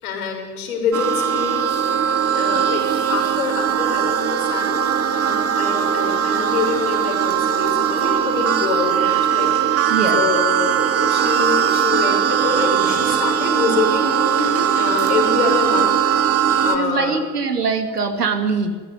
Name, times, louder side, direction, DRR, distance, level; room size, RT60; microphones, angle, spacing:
voice 1, 0.0-1.7 2.3-2.8 3.1-9.9 10.1-15.9 16.6-17.2, left 5 dB, 70° left, 2 dB, 6.5 m, -25 dB
sound 1, 0.9-16.8, right 9 dB, 30° right, 2.4 m, -19 dB
voice 2, 9.9-10.2 16.7-18.8, right 4 dB, 85° right, 7 dB, 2.8 m, -22 dB
22.5 x 17.0 x 9.6 m, 1.5 s
figure-of-eight pair, 75°, 45 cm